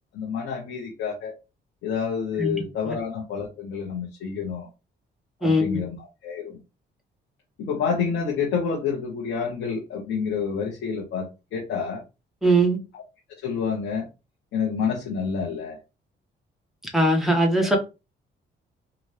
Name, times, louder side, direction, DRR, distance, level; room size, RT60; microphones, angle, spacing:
voice 1, 0.1-1.3 1.8-4.7 5.4-6.6 7.6-12.0 13.4-14.1 14.5-15.8, left 6 dB, 85° left, 1.2 m, -28 dB
voice 2, 5.4-5.8 12.4-12.8 16.9-17.8, right 1 dB, ahead, 1.5 m, -20 dB
3.9 x 2.6 x 3.3 m
cardioid pair, 90°, 20 cm